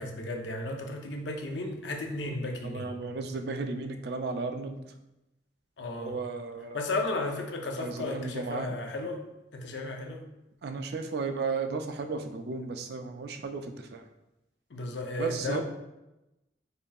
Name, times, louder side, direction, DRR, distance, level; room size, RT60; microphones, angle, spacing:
voice 1, 0.0-2.9 5.8-6.2 6.7-9.2 9.5-10.2 14.7-15.6, left 2 dB, 85° left, 3 dB, 0.6 m, -34 dB
voice 2, 2.6-4.8 6.0-6.8 7.8-8.7 10.6-14.0 15.2-15.6, right 4 dB, 60° right, 6 dB, 0.4 m, -34 dB
5.0 x 2.7 x 2.3 m, 0.95 s
head